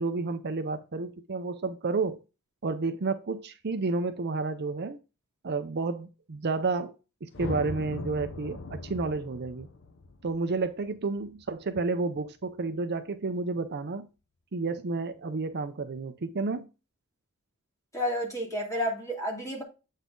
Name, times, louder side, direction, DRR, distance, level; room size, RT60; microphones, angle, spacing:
voice 1, 0.0-2.2 2.6-5.0 5.4-7.0 7.2-9.7 10.2-14.0 14.5-16.7, right 3 dB, 50° right, 0.6 m, -31 dB
sound 1, 7.3-11.7, left 2 dB, 60° left, 0.7 m, -39 dB
voice 2, 17.9-19.6, equal, 15° left, 2.5 m, -30 dB
8.2 x 4.0 x 3.8 m
head